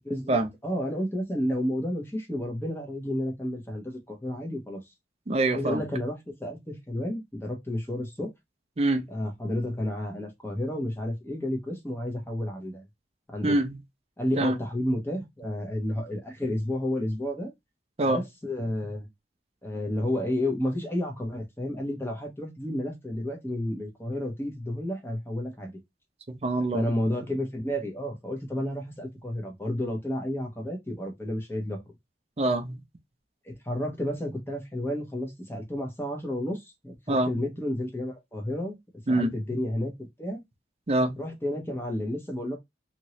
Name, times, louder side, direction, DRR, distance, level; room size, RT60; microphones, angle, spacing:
voice 1, 0.0-4.8 5.5-8.3 9.1-12.8 13.3-13.6 14.2-17.5 18.1-19.1 19.6-25.8 26.7-31.8 33.4-38.8 39.1-39.9 40.2-40.4 41.2-42.6, left 1 dB, 15° left, 0.9 m, -31 dB
voice 2, 5.3-5.8 8.8-9.1 13.4-13.8 14.4-14.6 18.0-18.2 26.3-26.8 32.4-32.8 37.1-37.3 39.1-39.6 40.9-41.2, right 2 dB, 35° right, 0.5 m, -25 dB
2.9 x 2.7 x 3.0 m
head